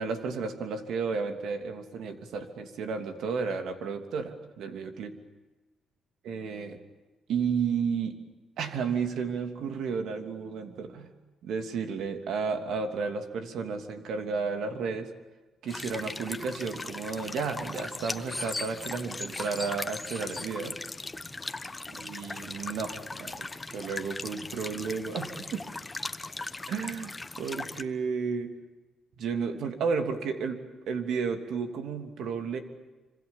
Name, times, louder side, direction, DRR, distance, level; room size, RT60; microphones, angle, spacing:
voice 1, 0.0-5.1 6.2-6.8 7.3-8.2 8.6-11.1 11.4-15.1 15.6-20.8 22.0-23.5 23.7-25.6 26.7-27.1 27.4-28.5 29.2-30.6 30.9-32.6, right 5 dB, 75° right, 6 dB, 2.9 m, -32 dB
sound 1, 15.7-27.8, left 2 dB, 20° left, 1.2 m, -38 dB
26.5 x 26.0 x 7.2 m, 1.2 s
cardioid pair, 90°, 0 cm